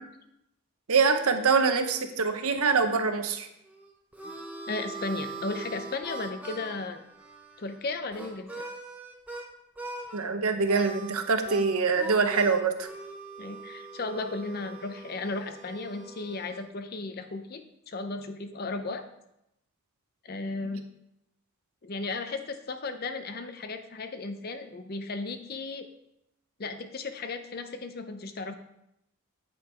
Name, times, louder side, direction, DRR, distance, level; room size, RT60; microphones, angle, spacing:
voice 1, 0.9-3.5 10.1-12.9, right 5 dB, 80° right, 7 dB, 0.8 m, -24 dB
Harmonica, 3.7-9.5 9.8-10.3 10.6-16.7, right 3 dB, 5° right, 0.8 m, -42 dB
voice 2, 4.7-7.0 7.6-8.6 13.4-19.0 20.2-20.8 21.8-25.9 26.6-28.5, left 3 dB, 45° left, 9 dB, 0.6 m, -35 dB
8.8 x 5.4 x 4.4 m, 0.83 s
head